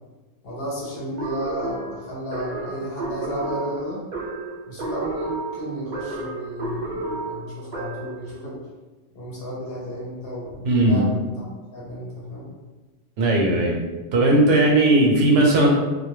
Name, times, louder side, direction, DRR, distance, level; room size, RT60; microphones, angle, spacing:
voice 1, 0.4-4.0 4.7-8.6 9.1-11.5 11.7-12.5, equal, 60° left, -5 dB, 0.8 m, -33 dB
sound 1, 1.2-8.2, right 2 dB, 60° right, 0.5 m, -31 dB
voice 2, 10.6-11.1 13.2-13.8 14.1-15.7, right 1 dB, 75° right, -1 dB, 0.9 m, -17 dB
2.2 x 2.2 x 3.0 m, 1.2 s
omnidirectional pair, 1.3 m